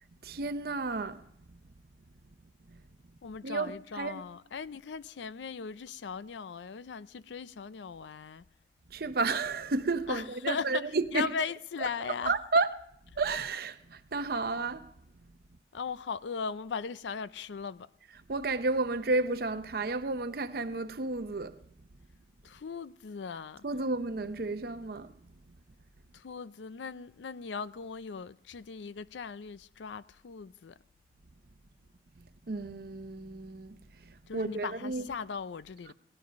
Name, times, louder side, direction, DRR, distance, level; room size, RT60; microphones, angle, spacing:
voice 1, 0.2-1.2 3.4-4.2 8.9-11.3 11.8-12.8 13.2-14.9 18.1-21.6 23.6-25.1 32.5-33.8 34.3-35.1 35.9-36.0, right 3 dB, 55° right, 0.7 m, -32 dB
voice 2, 3.2-8.4 10.1-12.3 15.7-17.9 22.4-23.6 26.1-30.7 34.3-35.9, left 5 dB, 85° left, 0.5 m, -38 dB
18.0 x 12.0 x 5.1 m
head